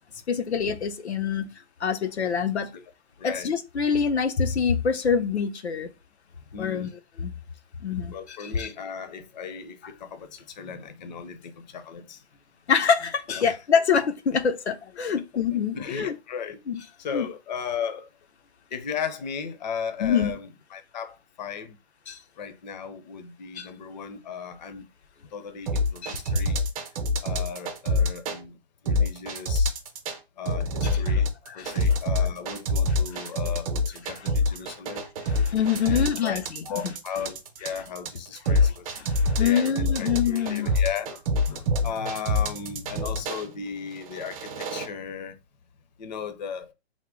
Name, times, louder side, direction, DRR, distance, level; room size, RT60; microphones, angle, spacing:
voice 1, 0.3-1.5 1.8-2.7 3.2-5.9 6.6-6.9 7.2-7.3 7.8-8.7 12.7-16.2 16.7-16.8 17.1-17.3 20.0-20.3 22.1-22.2 23.6-23.7 26.0-26.2 31.1-31.2 31.5-31.9 35.2-36.9 38.6-38.7 39.0-40.8, left 7 dB, 85° left, 0.7 m, -25 dB
voice 2, 3.2-3.5 6.5-6.9 8.1-12.2 13.4-13.6 15.7-16.6 17.0-18.1 18.7-21.8 22.4-24.9 25.3-26.6 27.2-28.6 28.8-29.7 30.4-31.3 31.5-35.1 35.8-39.0 39.4-45.4 46.0-46.7, left 7 dB, 45° left, 0.6 m, -36 dB
sound 1, 25.7-28.4 28.9-30.2 30.5-43.4 44.0-44.9, left 2 dB, 35° right, 0.7 m, -25 dB
3.5 x 2.0 x 3.7 m
hypercardioid pair, 150°, 32 cm